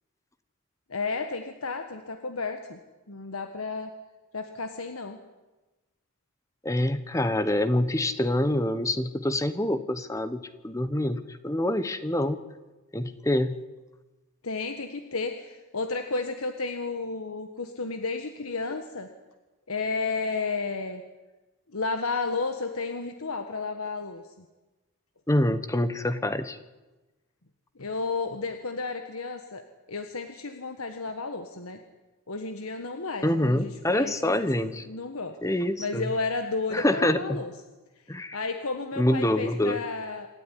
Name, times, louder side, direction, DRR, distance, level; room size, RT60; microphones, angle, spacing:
voice 1, 0.9-2.8 3.1-3.9 4.3-5.2 14.4-19.1 19.7-21.0 21.7-24.4 27.7-29.6 29.9-31.8 32.3-35.3 35.8-37.5 38.3-40.3, left 3 dB, 85° left, 7 dB, 1.5 m, -32 dB
voice 2, 6.6-12.4 12.9-13.6 25.3-26.6 33.2-34.9 35.4-36.0 36.7-37.4 38.1-38.4 39.0-39.8, left 1 dB, 15° left, 12 dB, 1.0 m, -26 dB
27.0 x 13.0 x 10.0 m, 1.1 s
head